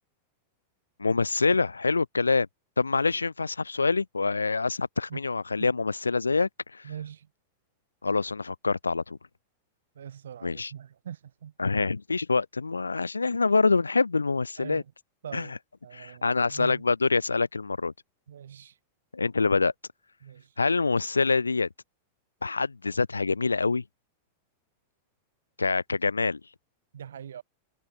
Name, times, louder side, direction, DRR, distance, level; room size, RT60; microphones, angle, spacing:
voice 1, 1.0-2.5 2.8-6.9 8.0-9.2 10.4-10.7 11.6-14.8 15.3-15.6 15.9-17.9 19.1-19.7 20.6-21.7 22.4-23.8 25.6-26.4, left 4 dB, 80° left, 2.4 m, -26 dB
voice 2, 6.8-7.3 10.0-11.5 14.6-14.8 15.2-15.5 15.8-16.8 18.3-18.8 20.2-20.5 26.9-27.4, right 9 dB, 65° right, 6.0 m, -42 dB
figure-of-eight pair, 90°, 0 cm